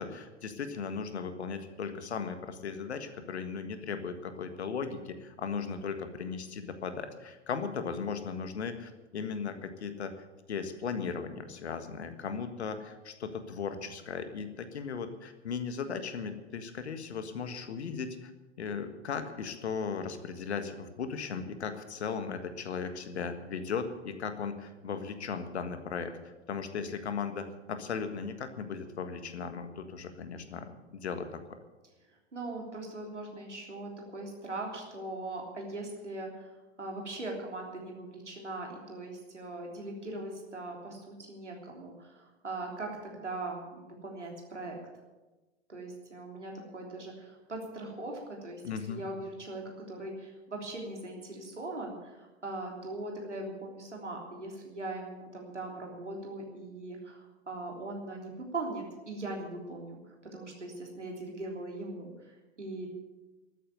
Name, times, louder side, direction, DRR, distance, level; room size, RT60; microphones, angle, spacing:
voice 1, 0.0-10.1 10.5-18.3 18.6-31.4 48.6-49.0, left 6 dB, 70° left, 9 dB, 1.7 m, -37 dB
voice 2, 32.3-44.8 45.7-48.6 48.9-62.9, right 2 dB, 85° right, 0 dB, 3.4 m, -40 dB
13.0 x 9.4 x 9.4 m, 1.2 s
figure-of-eight pair, 95°, 35 cm